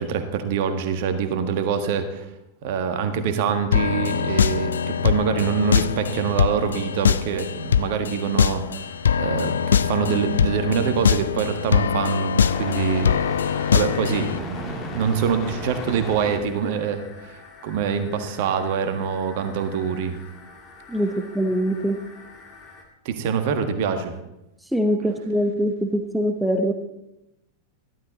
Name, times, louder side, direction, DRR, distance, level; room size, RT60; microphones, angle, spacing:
voice 1, 0.0-2.3 2.6-8.8 9.2-13.4 13.7-17.3 17.6-20.2 23.0-24.2, right 6 dB, 50° right, 7 dB, 1.5 m, -25 dB
sound 1, 3.7-14.4, left 7 dB, 70° left, 0.3 m, -22 dB
sound 2, 7.6-22.8, left 3 dB, 30° left, 2.5 m, -40 dB
voice 2, 20.9-22.0 24.7-26.7, equal, ahead, 6 dB, 1.0 m, -23 dB
14.0 x 12.0 x 4.1 m, 0.91 s
figure-of-eight pair, 90°, 0 cm